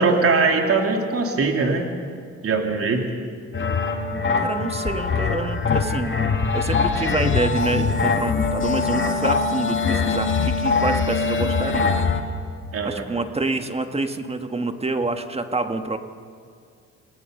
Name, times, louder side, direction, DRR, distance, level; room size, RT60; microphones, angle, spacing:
voice 1, 0.0-1.9 2.4-3.0 12.7-13.1, right 4 dB, 50° right, 3 dB, 3.0 m, -21 dB
sound 1, 3.5-12.2, left 4 dB, 40° left, 2.2 m, -22 dB
voice 2, 4.4-6.2 6.5-12.0 12.8-16.0, right 3 dB, 20° right, 7 dB, 1.7 m, -27 dB
27.5 x 19.0 x 6.7 m, 2.2 s
cardioid pair, 90°, 30 cm